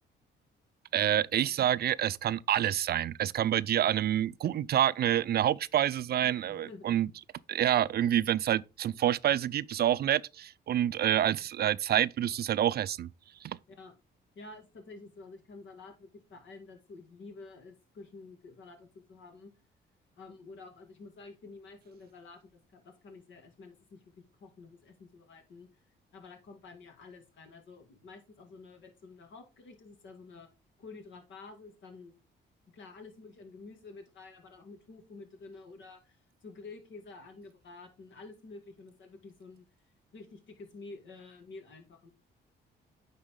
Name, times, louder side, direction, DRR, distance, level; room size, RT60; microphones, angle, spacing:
voice 1, 0.9-7.1 7.5-13.1 13.4-13.6, right 11 dB, 55° right, 0.4 m, -27 dB
voice 2, 6.2-6.9 13.7-13.9 14.4-19.5 20.2-25.7 26.1-30.5 30.8-32.1 32.7-39.7 40.1-42.1, left 3 dB, 70° left, 2.1 m, -50 dB
9.5 x 4.1 x 3.7 m
cardioid pair, 90°, 20 cm